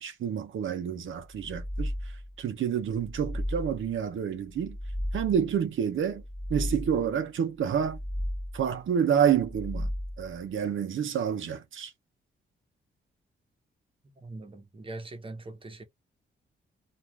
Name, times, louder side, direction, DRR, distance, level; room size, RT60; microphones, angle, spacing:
voice 1, 0.0-1.9 2.4-4.8 5.1-6.2 6.5-8.0 8.5-9.9 10.2-11.9, right 8 dB, 70° right, 0.7 m, -28 dB
sound 1, 1.3-2.4 2.9-4.0 4.5-5.6 6.1-7.2 7.7-8.7 9.3-10.4, equal, 15° left, 1.0 m, -35 dB
voice 2, 14.0-15.9, right 2 dB, 25° right, 0.8 m, -42 dB
2.4 x 2.3 x 3.1 m
cardioid pair, 105°, 21 cm